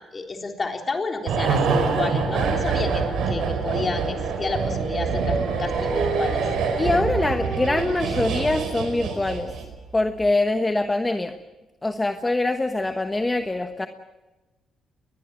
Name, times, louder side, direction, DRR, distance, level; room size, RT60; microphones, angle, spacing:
voice 1, 0.0-6.5, left 3 dB, 35° left, 3 dB, 3.8 m, -30 dB
sound 1, 1.3-9.8 10.1-10.2, right 5 dB, 75° right, 4.8 m, -25 dB
Dog, 4.1-9.7, right 3 dB, 45° right, 5.0 m, -33 dB
voice 2, 6.8-9.5 9.9-11.3 11.8-13.9, left 2 dB, 15° left, 7 dB, 1.2 m, -24 dB
21.0 x 20.5 x 8.9 m, 1.1 s
cardioid pair, 80°, 0 cm